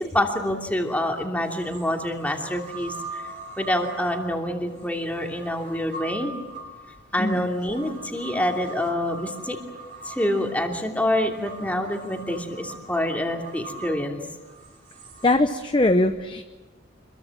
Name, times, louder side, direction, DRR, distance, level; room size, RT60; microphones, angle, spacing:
voice 1, 0.0-6.3 7.1-9.6 10.0-14.2, left 1 dB, 5° left, 2 dB, 2.9 m, -26 dB
sound 1, 0.8-0.9 1.5-15.4, right 2 dB, 40° right, 3.6 m, -42 dB
voice 2, 15.2-16.4, left 2 dB, 25° left, 7 dB, 0.8 m, -21 dB
26.5 x 22.5 x 7.3 m, 1.2 s
head